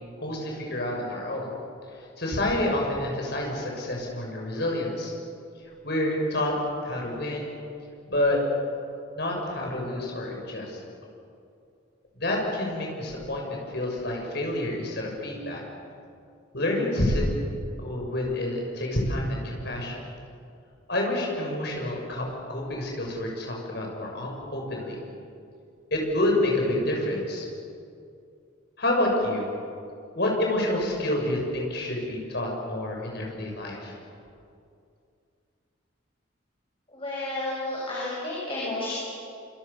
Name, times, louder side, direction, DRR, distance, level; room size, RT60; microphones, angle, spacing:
voice 1, 0.2-1.5 2.0-5.1 5.8-6.5 6.8-7.6 8.1-8.4 9.1-10.8 12.1-15.6 16.5-17.2 17.8-20.0 20.9-24.9 25.9-27.4 28.8-29.5 30.1-33.9, left 1 dB, 55° left, -1 dB, 6.8 m, -28 dB
voice 2, 36.9-39.0, left 2 dB, 25° left, -6 dB, 6.5 m, -31 dB
27.5 x 27.0 x 7.0 m, 2.5 s
head